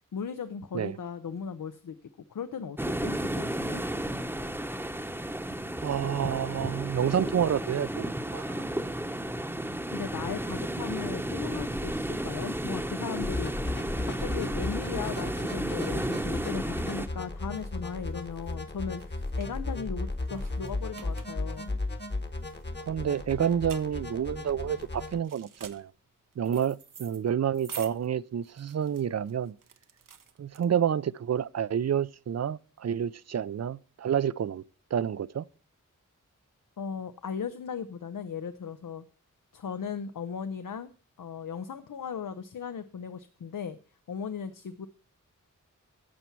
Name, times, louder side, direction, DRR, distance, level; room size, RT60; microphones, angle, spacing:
voice 1, 0.1-3.8 9.9-13.5 14.0-21.7 36.8-39.0 39.5-40.9 41.2-43.8 44.1-44.9, left 6 dB, 80° left, 0.6 m, -37 dB
sound 1, 2.8-17.1, right 1 dB, 5° right, 0.8 m, -33 dB
voice 2, 5.8-8.6 22.9-25.9 26.4-29.6 30.4-34.6 34.9-35.4, right 9 dB, 55° right, 0.4 m, -29 dB
sound 2, 13.2-25.2, left 2 dB, 35° left, 1.1 m, -35 dB
sound 3, 17.4-31.1, right 7 dB, 80° right, 0.8 m, -50 dB
11.5 x 7.1 x 4.5 m
wide cardioid pair, 75°, 32 cm